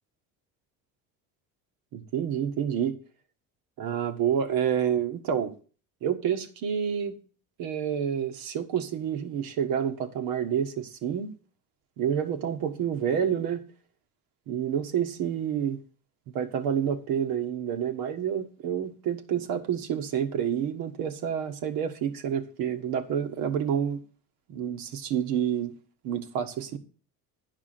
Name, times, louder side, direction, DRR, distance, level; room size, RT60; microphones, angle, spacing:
voice 1, 1.9-3.0 3.8-5.5 6.0-7.2 7.6-11.3 12.0-13.6 14.5-15.8 16.3-24.0 24.5-25.7 26.0-26.8, right 8 dB, 85° right, 7 dB, 1.6 m, -28 dB
11.0 x 4.9 x 7.6 m, 0.38 s
cardioid pair, 140°, 34 cm